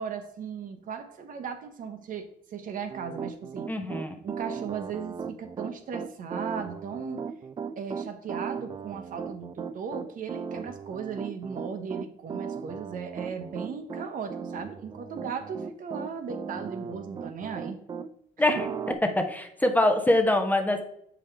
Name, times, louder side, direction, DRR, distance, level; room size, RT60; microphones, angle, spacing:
voice 1, 0.0-3.7 4.2-7.2 7.8-17.8 18.4-18.6, right 6 dB, 55° right, 7 dB, 0.9 m, -37 dB
Piano, 2.9-18.1 18.6-18.9, right 6 dB, 25° right, 0.4 m, -37 dB
voice 2, 3.7-4.2 18.4-18.7 19.2-20.8, left 1 dB, 10° left, 4 dB, 0.8 m, -24 dB
7.3 x 4.9 x 3.3 m, 0.72 s
cardioid pair, 110°, 17 cm